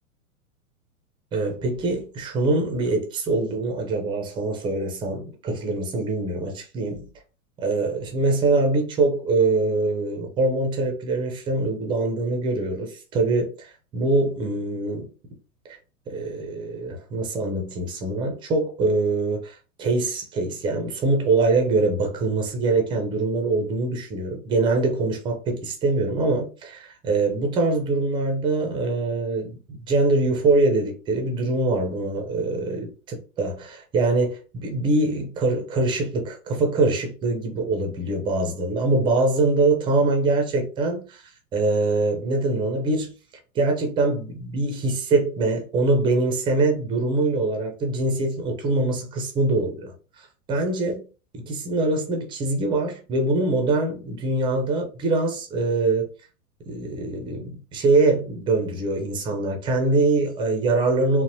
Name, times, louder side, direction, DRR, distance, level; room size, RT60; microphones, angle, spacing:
voice 1, 1.3-7.1 7.6-15.1 16.1-29.6 29.9-41.2 41.5-43.1 43.5-51.0 51.5-56.1 56.7-61.2, right 2 dB, 10° right, 0.5 m, -23 dB
3.8 x 2.1 x 2.7 m
figure-of-eight pair, 95°, 43 cm